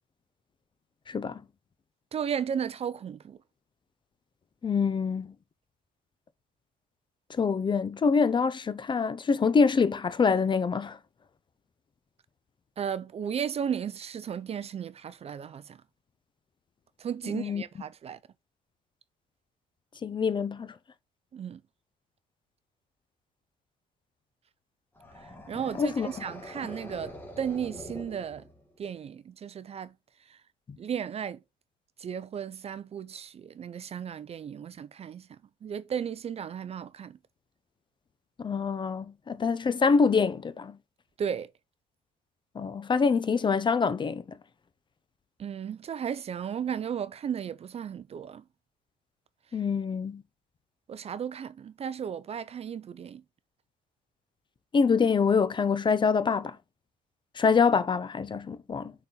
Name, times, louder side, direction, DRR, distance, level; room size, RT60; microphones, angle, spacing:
voice 1, 1.1-1.4 4.6-5.3 7.3-11.0 17.3-17.6 20.0-20.7 25.8-26.1 38.4-40.8 42.5-44.2 49.5-50.2 54.7-56.6 57.4-58.9, left 5 dB, 30° left, 0.7 m, -25 dB
voice 2, 2.1-3.4 12.8-15.8 17.0-18.2 21.3-21.6 25.2-28.5 28.8-29.9 30.3-30.4 30.8-31.4 32.0-37.2 41.2-41.5 45.4-48.4 50.9-53.2, right 8 dB, 35° right, 0.5 m, -35 dB
sound 1, 24.9-28.8, left 1 dB, 10° left, 2.4 m, -44 dB
6.5 x 4.2 x 3.8 m
cardioid pair, 110°, 17 cm